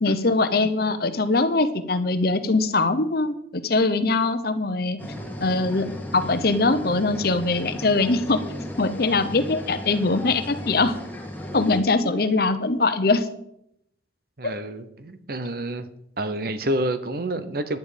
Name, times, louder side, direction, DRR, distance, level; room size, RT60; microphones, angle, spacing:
voice 1, 0.0-5.0 5.4-8.4 8.8-11.0 11.5-13.3 14.4-14.5, left 3 dB, 55° left, 10 dB, 0.9 m, -22 dB
sound 1, 5.0-11.8, equal, 10° left, 1.6 m, -35 dB
voice 2, 14.4-15.9 16.2-17.8, right 1 dB, 50° right, 11 dB, 0.9 m, -28 dB
10.5 x 9.5 x 5.1 m, 0.76 s
head